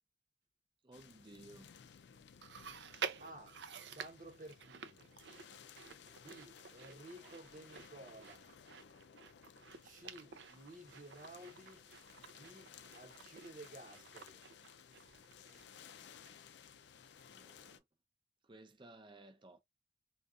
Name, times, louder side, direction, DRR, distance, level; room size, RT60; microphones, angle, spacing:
voice 1, 0.8-1.7 17.3-17.8 18.5-19.6, right 2 dB, 30° right, 0.6 m, -57 dB
sound 1, 0.9-17.8, left 7 dB, 75° left, 0.4 m, -59 dB
Chewing mastication, 2.4-16.0 16.3-16.4 17.2-17.3, right 7 dB, 75° right, 0.5 m, -50 dB
voice 2, 3.2-3.5 3.9-5.1 6.0-8.5 9.8-11.8 12.2-14.4, right 1 dB, 50° right, 1.1 m, -54 dB
3.5 x 2.4 x 2.4 m
head